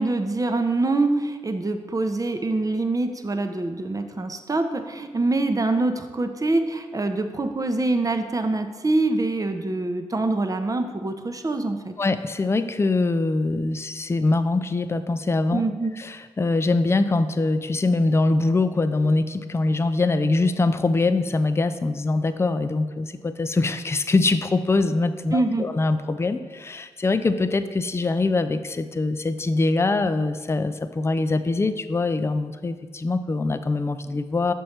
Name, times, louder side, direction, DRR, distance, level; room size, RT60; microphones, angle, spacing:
voice 1, 0.0-11.9 15.5-15.9 25.3-25.7, right 2 dB, 25° right, 7 dB, 0.7 m, -25 dB
voice 2, 12.0-15.6 16.0-34.5, left 3 dB, 20° left, 10 dB, 0.4 m, -23 dB
6.3 x 4.5 x 4.2 m, 1.4 s
supercardioid pair, 40°, 13 cm